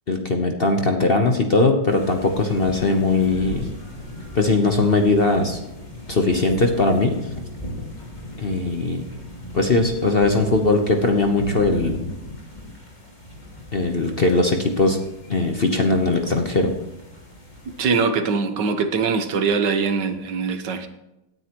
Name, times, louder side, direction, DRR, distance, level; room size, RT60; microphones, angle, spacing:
voice 1, 0.1-3.7 4.3-5.6 6.1-7.2 8.4-9.0 9.5-12.0 13.7-15.0 15.3-16.7, left 3 dB, 40° left, 4 dB, 0.9 m, -20 dB
sound 1, 1.9-17.8, left 1 dB, 25° left, 2.8 m, -37 dB
voice 2, 17.8-20.9, right 5 dB, 70° right, 8 dB, 1.7 m, -22 dB
17.5 x 9.5 x 3.0 m, 0.92 s
omnidirectional pair, 2.0 m